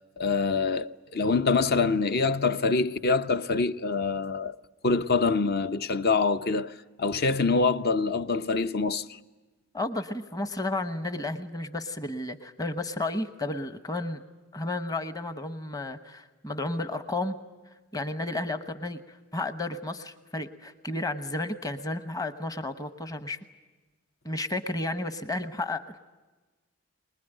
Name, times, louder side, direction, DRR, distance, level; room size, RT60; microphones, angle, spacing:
voice 1, 0.2-4.5 4.8-6.7 7.0-9.1, left 4 dB, 45° left, 0.7 m, -25 dB
voice 2, 9.7-14.2 14.5-17.3 17.9-23.4 24.2-26.0, left 2 dB, 15° left, 1.0 m, -32 dB
24.0 x 21.0 x 9.0 m
head